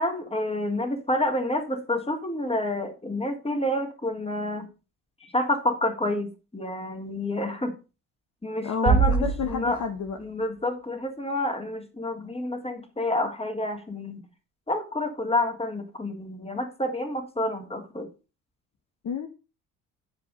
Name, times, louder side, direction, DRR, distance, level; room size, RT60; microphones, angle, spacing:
voice 1, 0.0-4.7 5.2-7.8 8.4-9.8 10.2-14.2 14.7-18.1, left 1 dB, 15° left, 3.1 m, -29 dB
voice 2, 8.6-10.2 19.0-19.3, left 6 dB, 40° left, 1.5 m, -30 dB
Bass drum, 8.9-10.3, right 5 dB, 75° right, 4.3 m, -24 dB
14.5 x 4.9 x 5.5 m
hypercardioid pair, 55°, 45 cm